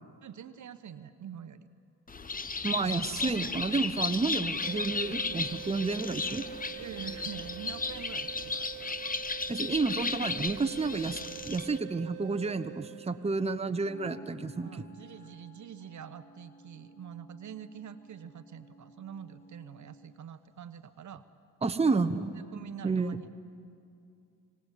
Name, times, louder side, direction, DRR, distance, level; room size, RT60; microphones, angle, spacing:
voice 1, 0.2-1.7 6.8-9.0 14.6-21.2 21.9-22.0 22.5-23.3, right 8 dB, 55° right, 11 dB, 1.1 m, -45 dB
Bird, 2.1-11.8, left 4 dB, 25° left, 1.0 m, -35 dB
voice 2, 2.6-6.4 9.5-14.7 21.6-22.3 22.8-23.2, right 4 dB, 15° right, 8 dB, 1.1 m, -30 dB
sound 1, 4.6-13.6, right 18 dB, 85° right, 0.7 m, -45 dB
Wind instrument woodwind instrument, 13.6-20.3, right 1 dB, 50° left, 5.1 m, -54 dB
26.0 x 19.0 x 8.4 m, 2.4 s
supercardioid pair, 70°, 35 cm